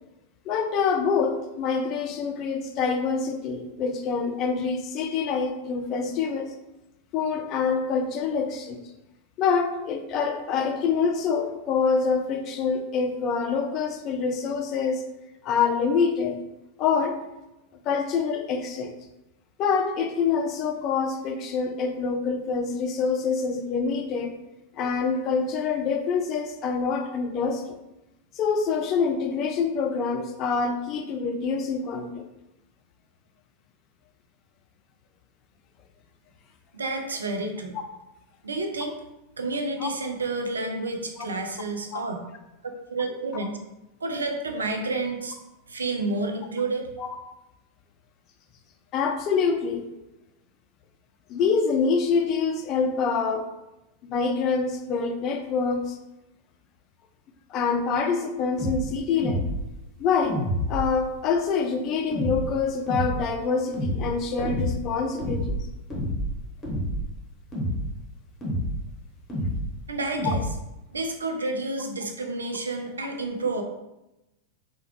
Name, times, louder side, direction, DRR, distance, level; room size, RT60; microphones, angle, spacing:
voice 1, 0.5-6.5 7.1-8.8 9.4-15.0 15.4-16.4 16.8-17.2 17.9-19.0 19.6-24.3 24.7-27.8 28.3-32.2 39.8-39.9 41.9-42.0 47.0-47.1 48.9-49.9 51.3-53.5 54.0-56.0 57.5-59.4 60.0-60.4 60.7-65.6 70.2-70.4, left 5 dB, 35° left, 6 dB, 0.3 m, -26 dB
voice 2, 36.7-37.8 38.4-38.9 39.4-42.2 42.9-43.6 44.0-45.4 45.7-46.9 69.9-70.5 70.9-73.6, right 2 dB, 75° right, 4 dB, 0.4 m, -30 dB
sound 1, 58.6-58.8 59.2-59.6 60.2-60.9 62.1-62.4 62.9-63.2 63.7-64.1 64.4-64.8 65.2-65.6 65.9-66.3 66.6-67.1 67.5-67.9 68.4-68.8 69.3-69.7 70.2-70.5, equal, 20° left, 0.9 m, -28 dB
3.4 x 2.1 x 3.1 m, 0.96 s
figure-of-eight pair, 90°, 0 cm